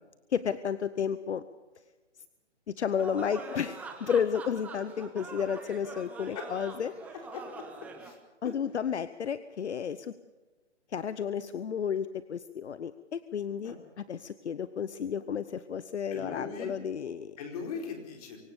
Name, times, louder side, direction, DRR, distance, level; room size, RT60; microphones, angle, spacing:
voice 1, 0.3-1.4 2.7-6.9 8.4-10.1 10.9-17.4, left 7 dB, 70° left, 14 dB, 0.9 m, -32 dB
sound 1, 3.0-8.1, right 4 dB, 5° right, 0.9 m, -44 dB
voice 2, 7.3-7.7 8.0-8.2 13.6-13.7 16.1-16.8 17.4-18.4, left 5 dB, 30° left, 2 dB, 4.6 m, -39 dB
24.5 x 16.5 x 6.9 m, 1.2 s
hypercardioid pair, 155°, 35 cm